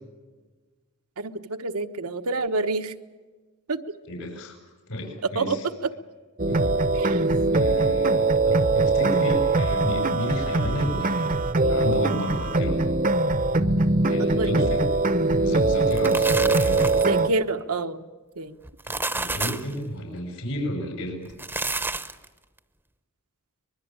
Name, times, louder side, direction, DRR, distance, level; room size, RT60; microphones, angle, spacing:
voice 1, 1.2-2.9 3.7-3.9 5.3-5.9 6.9-7.3 8.5-8.6 14.2-14.7 17.0-18.0 18.4-18.5, right 3 dB, 75° right, 8 dB, 1.2 m, -28 dB
voice 2, 4.1-4.6 4.9-5.7 6.5-6.7 7.5-12.8 14.0-14.9 15.4-17.0 18.8-21.3, equal, 80° left, 2 dB, 6.0 m, -32 dB
sound 1, 6.4-17.3, right 3 dB, 40° right, 0.9 m, -22 dB
sound 2, 15.7-17.2 18.6-19.7 21.3-22.3, right 3 dB, 10° right, 0.9 m, -30 dB
24.5 x 21.0 x 8.8 m, 1.3 s
head